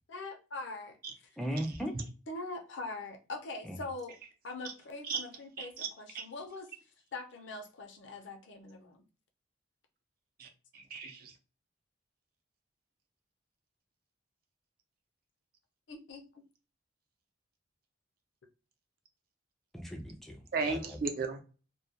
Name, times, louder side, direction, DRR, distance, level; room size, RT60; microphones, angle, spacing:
voice 1, 0.1-1.0 2.3-4.2 4.4-6.7 7.1-9.0 15.9-16.3, left 3 dB, 75° left, 0.5 m, -42 dB
voice 2, 1.4-1.9 3.6-3.8 19.7-21.0, equal, ahead, 0.4 m, -38 dB
voice 3, 5.6-5.9 6.1-6.3 10.4-10.5 10.7-11.3 20.5-21.4, right 4 dB, 50° right, 0.5 m, -35 dB
2.2 x 2.1 x 2.7 m
head